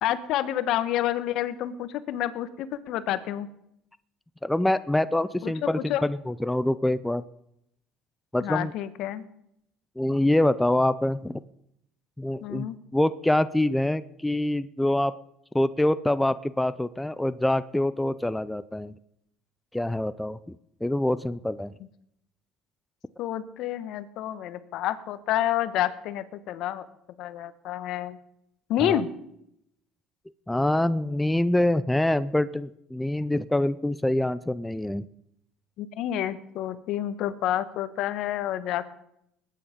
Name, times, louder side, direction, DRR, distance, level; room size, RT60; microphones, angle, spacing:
voice 1, 0.0-3.5 5.4-6.0 8.4-9.2 12.4-12.8 23.2-26.9 27.2-28.2 28.7-29.1 35.8-38.9, left 12 dB, 65° left, 13 dB, 1.2 m, -29 dB
voice 2, 4.4-7.2 8.3-8.7 10.0-11.4 12.2-12.7 12.9-15.1 15.5-18.9 19.7-20.4 20.8-21.7 28.8-29.0 30.5-35.1, left 1 dB, 5° left, 15 dB, 0.5 m, -25 dB
20.0 x 9.7 x 5.2 m, 0.78 s
supercardioid pair, 105°, 0 cm